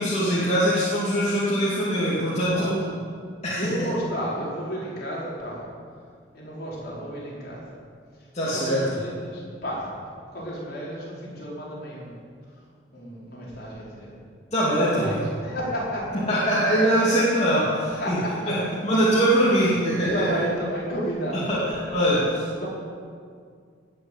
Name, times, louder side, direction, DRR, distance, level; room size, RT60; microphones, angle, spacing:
voice 1, 0.0-2.8 3.4-3.9 8.3-9.0 14.5-15.2 16.1-18.2 18.5-20.3 21.5-22.7, equal, 35° left, -8 dB, 2.7 m, -22 dB
voice 2, 2.5-3.0 3.6-5.7 6.3-7.6 8.1-9.9 10.3-12.3 12.5-12.6 12.9-14.2 14.8-16.4 18.0-18.5 20.1-21.7 22.6-22.7, equal, 50° left, -5 dB, 4.7 m, -32 dB
18.5 x 6.9 x 8.2 m, 2.1 s
head